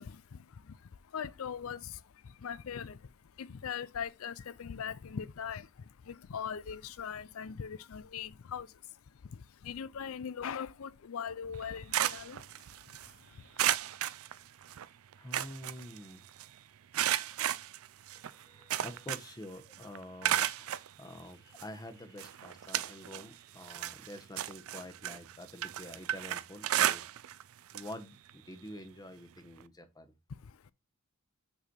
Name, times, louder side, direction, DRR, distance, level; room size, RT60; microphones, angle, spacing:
voice 1, 0.0-3.1 3.4-8.7 9.2-12.4 12.9-13.6 30.3-30.7, left 7 dB, 70° left, 0.5 m, -41 dB
sound 1, 11.5-13.1 13.6-14.8 15.1-16.4 16.9-19.4 19.7-20.9 21.6-21.7 22.2-23.3 23.6-27.4 27.7-27.9 28.3-28.4 29.6-29.7, right 12 dB, 70° right, 0.4 m, -33 dB
voice 2, 15.2-16.3 18.1-27.3 27.7-30.1, left 1 dB, 20° left, 1.0 m, -48 dB
5.7 x 4.1 x 4.5 m
head